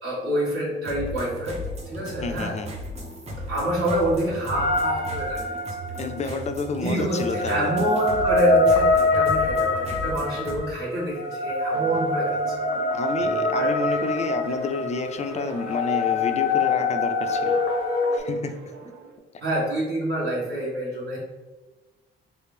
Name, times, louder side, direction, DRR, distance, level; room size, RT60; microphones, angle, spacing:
voice 1, 0.0-2.6 3.5-5.6 6.2-6.4 6.8-12.6 13.5-13.7 19.4-21.2, equal, 65° right, -10 dB, 1.5 m, -27 dB
sound 1, 0.8-10.6, equal, 30° right, 0.8 m, -36 dB
voice 2, 2.2-2.7 6.0-7.7 12.9-17.6 18.1-18.6, left 3 dB, 35° left, 7 dB, 0.4 m, -29 dB
sound 2, 4.5-6.1 7.1-18.2, left 2 dB, 90° left, 0.5 m, -24 dB
sound 3, 11.7-19.2, right 4 dB, 85° right, 0.5 m, -38 dB
3.2 x 2.4 x 3.2 m, 1.2 s
cardioid pair, 90°, 20 cm